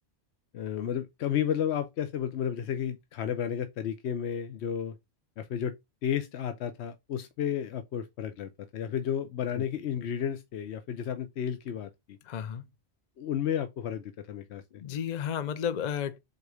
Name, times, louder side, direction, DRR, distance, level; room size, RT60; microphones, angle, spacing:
voice 1, 0.5-5.0 5.4-5.7 6.0-12.2 13.2-14.8, left 9 dB, 85° left, 1.0 m, -32 dB
voice 2, 12.3-12.6 14.8-16.2, left 8 dB, 55° left, 0.5 m, -32 dB
4.9 x 4.0 x 4.8 m
omnidirectional pair, 1.1 m